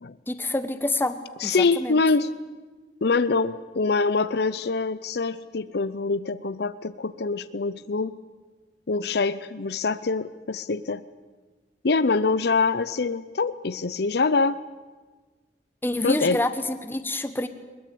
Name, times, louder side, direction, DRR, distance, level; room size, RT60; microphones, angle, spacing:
voice 1, 0.3-1.2 1.4-2.0 15.8-17.5, left 2 dB, 15° left, 9 dB, 1.3 m, -27 dB
voice 2, 1.4-2.3 3.0-8.2 8.9-11.0 11.8-14.6 16.0-16.4, left 4 dB, 65° left, 14 dB, 0.7 m, -24 dB
22.0 x 21.0 x 8.5 m, 1.3 s
head